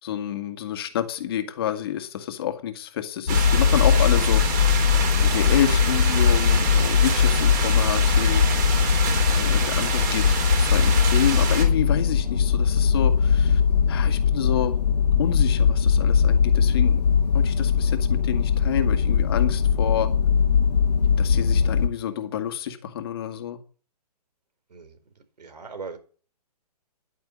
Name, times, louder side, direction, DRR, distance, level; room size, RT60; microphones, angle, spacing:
voice 1, 0.0-4.6 5.2-8.4 9.3-13.6 13.9-14.8 15.2-17.0 17.3-20.1 21.2-23.6, left 10 dB, 35° left, 1.9 m, -28 dB
sound 1, 3.3-21.9, left 6 dB, 80° left, 1.5 m, -20 dB
sound 2, 3.3-11.7, right 6 dB, 25° right, 3.8 m, -28 dB
voice 2, 25.4-26.0, right 5 dB, 85° right, 4.4 m, -38 dB
11.0 x 9.3 x 8.6 m
hypercardioid pair, 165°, 21 cm